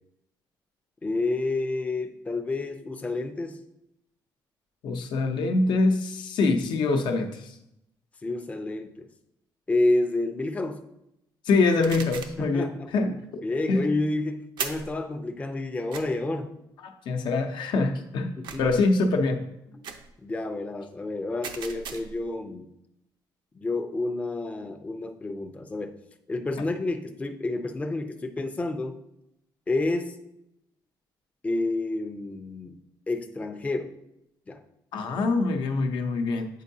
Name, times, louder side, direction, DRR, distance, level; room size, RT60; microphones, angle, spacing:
voice 1, 1.0-3.6 8.2-9.1 9.7-10.8 12.4-12.9 13.4-16.5 18.4-18.6 19.7-19.8 20.2-22.7 23.6-26.0 26.3-29.0 29.7-30.2 31.4-33.9 34.5-34.6, left 2 dB, 15° left, 5 dB, 0.5 m, -29 dB
voice 2, 4.8-7.5 11.4-13.2 13.7-13.9 16.8-18.3 18.6-19.4 34.9-36.5, left 3 dB, 75° left, 5 dB, 0.7 m, -24 dB
sound 1, 11.8-12.4 14.6-15.0 15.9-16.0 18.4-18.8 19.8-20.1 21.4-22.2, right 6 dB, 75° right, 0.6 m, -37 dB
8.2 x 4.5 x 2.7 m, 0.84 s
cardioid pair, 135°, 8 cm